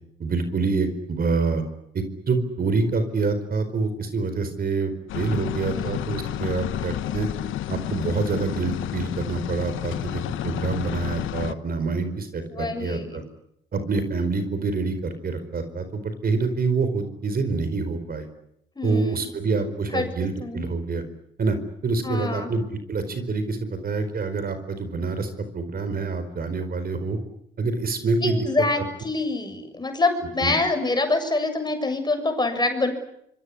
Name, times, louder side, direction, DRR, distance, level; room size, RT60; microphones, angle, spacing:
voice 1, 0.2-1.6 1.9-7.3 7.7-13.2 13.7-18.3 18.8-21.0 21.4-21.6 21.8-27.2 27.6-28.4 28.8-28.9 30.4-30.5, right 4 dB, 50° right, 10 dB, 4.7 m, -26 dB
sound 1, 5.1-11.5, left 13 dB, 85° left, 1.2 m, -30 dB
voice 2, 12.5-13.2 18.8-19.2 19.9-20.1 20.4-20.6 22.0-22.5 28.2-32.9, left 2 dB, 20° left, 7 dB, 7.2 m, -25 dB
25.5 x 23.0 x 10.0 m, 0.76 s
cardioid pair, 90°, 20 cm